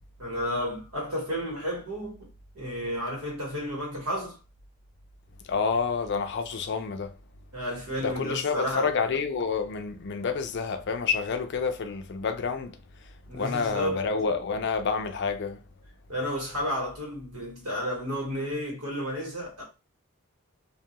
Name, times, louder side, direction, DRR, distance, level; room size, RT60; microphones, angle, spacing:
voice 1, 0.2-2.3 2.5-4.4 7.5-8.9 13.3-14.0 16.1-19.6, equal, 90° right, 1.3 m, -32 dB
voice 2, 5.4-7.1 8.0-15.6, left 5 dB, 55° left, 0.4 m, -29 dB
2.3 x 2.2 x 2.8 m
head